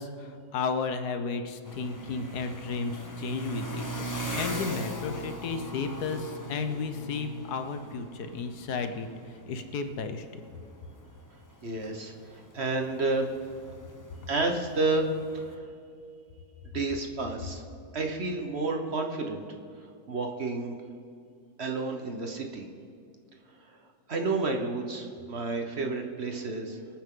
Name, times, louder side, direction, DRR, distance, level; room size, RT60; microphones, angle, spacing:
voice 1, 0.0-10.4, left 4 dB, 80° left, 8 dB, 1.5 m, -33 dB
sound 1, 1.6-15.5, equal, 15° left, 0.9 m, -40 dB
voice 2, 11.6-13.3 14.3-15.6 16.7-17.6 17.9-19.4 20.1-20.7 21.6-22.6 24.1-26.8, right 3 dB, 45° right, 3 dB, 1.2 m, -30 dB
24.5 x 9.0 x 3.8 m, 2.5 s
omnidirectional pair, 1.7 m